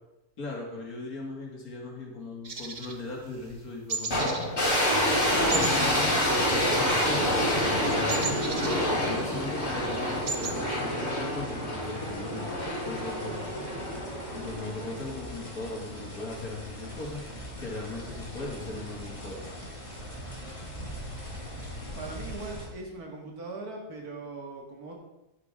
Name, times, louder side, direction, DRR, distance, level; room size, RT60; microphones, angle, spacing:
voice 1, 0.4-4.4 5.5-8.2 8.9-12.5 12.8-13.4 14.3-19.5, left 2 dB, 70° left, -2 dB, 2.8 m, -38 dB
sound 1, 2.4-3.6 3.9-4.5 4.8-5.0 5.5-7.0 7.3-9.4 9.7-9.8 10.0-10.6, right 4 dB, 35° right, 0.8 m, -35 dB
sound 2, 4.1-15.3, equal, 55° left, 3.3 m, -27 dB
sound 3, 5.2-22.7, equal, 20° left, 2.2 m, -42 dB
voice 2, 22.0-24.9, right 3 dB, 75° right, 0 dB, 2.5 m, -40 dB
10.5 x 9.8 x 3.7 m, 0.96 s
omnidirectional pair, 1.6 m